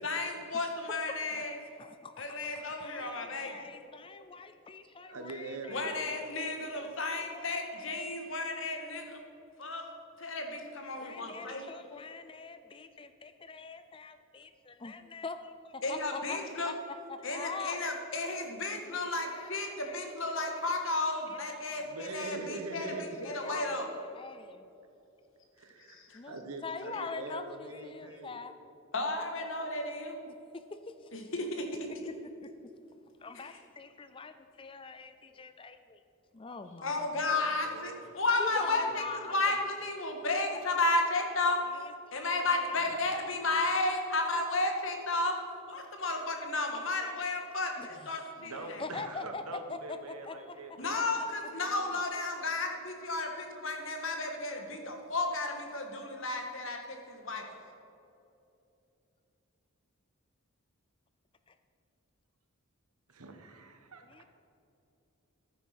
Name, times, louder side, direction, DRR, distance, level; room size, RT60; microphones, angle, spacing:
voice 1, 0.0-1.6 2.2-3.7 5.7-9.2 9.6-9.9 10.2-11.6 15.8-16.7 17.2-23.1 23.3-23.9 25.9-26.2 28.9-30.1 31.1-31.9 33.3-33.6 36.8-39.0 39.3-41.6 42.1-45.4 45.7-48.8 50.8-57.4, left 2 dB, 60° left, 4 dB, 1.7 m, -33 dB
voice 2, 1.8-6.1 6.6-8.2 11.0-17.8 18.9-22.2 22.9-24.7 26.1-26.4 26.6-28.5 30.3-31.3 32.1-32.5 33.2-36.0 36.3-37.2 38.4-39.5 41.8-42.9 47.8-49.4 49.7-50.6 50.9-51.3 51.6-52.0 61.5-61.6 64.0-64.2, left 4 dB, 25° left, 10 dB, 0.4 m, -44 dB
voice 3, 5.0-5.9 21.7-23.6 25.6-26.0 26.3-28.3 37.1-38.1 38.5-39.6 45.9-46.0 48.4-51.1 63.1-64.0, right 3 dB, 90° right, 5 dB, 1.4 m, -43 dB
12.0 x 9.5 x 5.9 m, 2.8 s
head